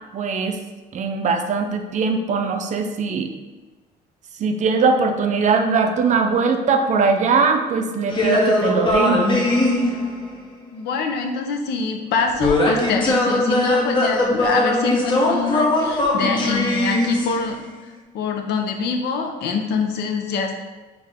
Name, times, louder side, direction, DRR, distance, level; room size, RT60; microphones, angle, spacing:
voice 1, 0.1-0.6 0.9-3.3 4.4-9.2, right 4 dB, 45° right, 5 dB, 0.5 m, -20 dB
sound 1, 8.1-10.5 12.4-17.7, left 1 dB, 30° left, 0.8 m, -20 dB
voice 2, 10.7-17.6 18.1-20.6, left 5 dB, 75° left, 3 dB, 0.7 m, -25 dB
4.6 x 2.6 x 3.5 m, 1.2 s
cardioid pair, 110°, 17 cm